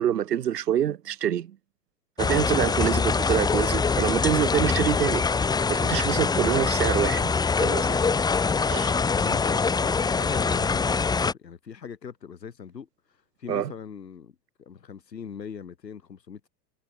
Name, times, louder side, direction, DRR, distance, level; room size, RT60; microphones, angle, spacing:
voice 1, 0.0-1.6 2.2-5.2 5.7-8.0 8.7-9.0 13.5-13.7, right 10 dB, 70° right, 4.6 m, -26 dB
sound 1, 2.2-11.3, left 5 dB, 10° left, 0.7 m, -24 dB
voice 2, 9.2-12.9 13.4-16.5, left 7 dB, 80° left, 4.3 m, -40 dB
figure-of-eight pair, 95°, 49 cm